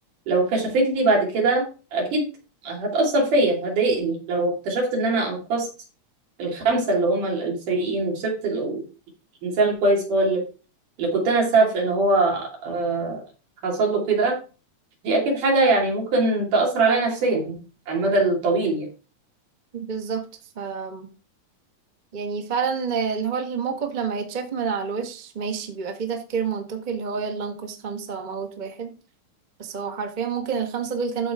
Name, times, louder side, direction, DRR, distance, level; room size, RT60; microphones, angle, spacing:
voice 1, 0.3-1.6 1.9-2.2 2.6-5.7 6.4-8.8 9.4-10.4 11.0-13.2 13.6-14.4 15.0-17.6 17.9-18.9, right 2 dB, 85° right, -1 dB, 4.3 m, -22 dB
voice 2, 19.7-20.2 20.5-21.1 22.1-28.9 29.6-31.3, right 6 dB, 50° right, 3 dB, 0.5 m, -28 dB
13.0 x 5.0 x 3.6 m, 0.35 s
omnidirectional pair, 3.5 m